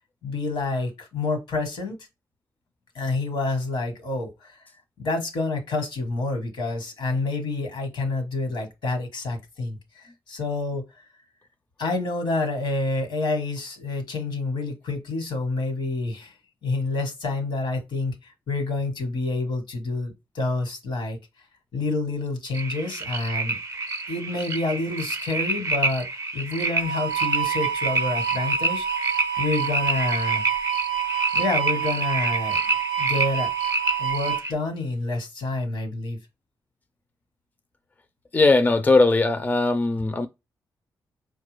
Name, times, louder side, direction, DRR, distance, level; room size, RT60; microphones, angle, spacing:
voice 1, 0.2-2.0 2.9-4.6 5.0-10.8 11.8-16.3 16.6-21.2 21.7-23.6 24.1-30.4 31.3-32.7 33.0-33.5 34.0-36.2, left 3 dB, 80° left, 1.2 m, -28 dB
sound 1, 22.5-34.5, right 2 dB, 35° right, 0.5 m, -28 dB
sound 2, 26.8-34.4, right 10 dB, 85° right, 0.4 m, -28 dB
voice 2, 38.3-40.3, left 3 dB, 20° left, 0.4 m, -19 dB
4.6 x 2.2 x 3.2 m
cardioid pair, 65°, 8 cm